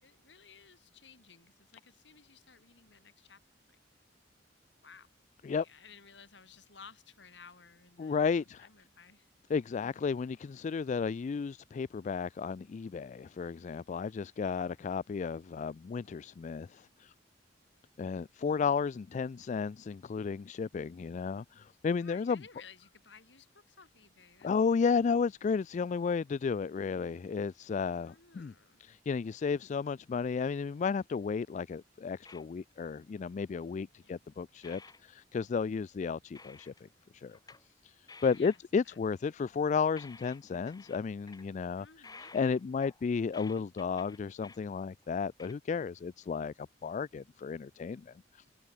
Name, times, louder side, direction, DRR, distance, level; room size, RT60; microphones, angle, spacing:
voice 1, 0.0-3.4 3.7-3.8 4.8-5.1 5.6-9.3 22.0-24.5 28.0-28.8 34.0-34.2 38.3-38.6 38.8-39.0 41.8-42.3, left 5 dB, 70° left, 3.6 m, -57 dB
voice 2, 8.0-8.7 9.5-17.1 18.0-22.4 24.4-28.5 28.8-36.9 37.1-37.4 37.8-37.9 38.2-41.9 42.2-48.1, left 5 dB, 40° left, 0.3 m, -33 dB
sound 1, 32.2-32.7 33.5-34.0 34.3-34.4 34.6-35.0 35.4-35.6 36.3-36.9 37.3-37.7 38.1-38.6 39.7-39.8 40.0-41.5 42.0-44.6 45.0-45.1 45.4-45.5, left 4 dB, 20° left, 1.7 m, -53 dB
head